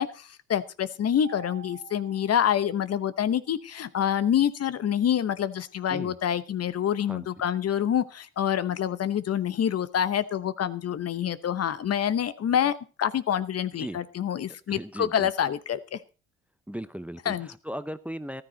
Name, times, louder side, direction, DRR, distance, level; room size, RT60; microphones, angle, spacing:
voice 1, 0.0-16.0 17.3-17.5, left 9 dB, 55° left, 14 dB, 0.9 m, -27 dB
Mallet percussion, 1.2-3.5, right 13 dB, 60° right, 1.3 m, -49 dB
voice 2, 14.7-15.3 16.7-18.4, equal, 5° right, 14 dB, 0.6 m, -37 dB
14.0 x 13.0 x 4.0 m, 0.34 s
cardioid pair, 90°, 30 cm